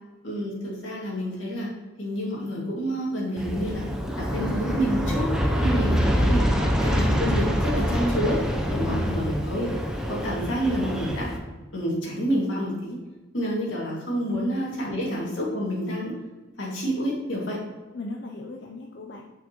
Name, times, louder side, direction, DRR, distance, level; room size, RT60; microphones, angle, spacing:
voice 1, 0.2-1.7 2.0-3.9 4.2-5.3 5.6-6.5 6.8-8.4 8.7-9.7 10.1-11.3 11.7-13.0 13.3-16.1 16.6-17.6, equal, 90° left, -4 dB, 2.2 m, -28 dB
Aircraft, 3.4-11.4, equal, 5° right, 0.6 m, -25 dB
voice 2, 17.9-19.2, left 2 dB, 65° left, 1 dB, 0.5 m, -36 dB
6.2 x 6.1 x 3.0 m, 1.2 s
head